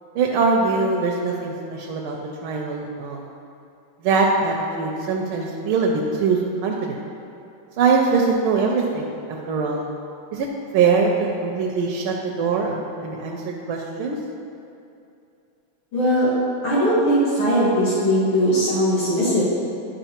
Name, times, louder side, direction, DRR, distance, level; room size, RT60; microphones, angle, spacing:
voice 1, 0.1-2.2 2.4-3.3 4.0-7.0 7.8-9.9 10.3-10.5 10.7-14.2, right 4 dB, 90° right, -1 dB, 1.5 m, -22 dB
voice 2, 15.9-16.3 16.6-19.4, equal, 80° left, -11 dB, 2.4 m, -19 dB
9.9 x 5.6 x 2.9 m, 2.6 s
omnidirectional pair, 2.3 m